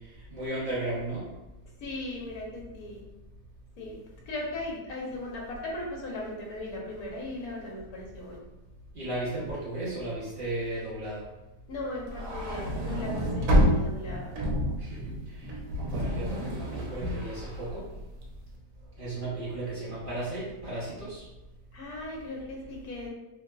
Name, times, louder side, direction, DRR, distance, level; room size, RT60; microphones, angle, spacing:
voice 1, 0.3-1.3 8.9-11.2 14.8-15.5 15.8-17.9 19.0-21.2, right 2 dB, 50° right, -9 dB, 0.6 m, -35 dB
voice 2, 1.8-3.0 3.8-4.0 4.3-8.4 11.7-14.4 21.7-23.1, left 1 dB, 65° left, -2 dB, 1.2 m, -37 dB
sound 1, 12.1-18.4, equal, 80° right, 1.2 m, -29 dB
3.0 x 2.7 x 2.3 m, 1.0 s
omnidirectional pair, 1.8 m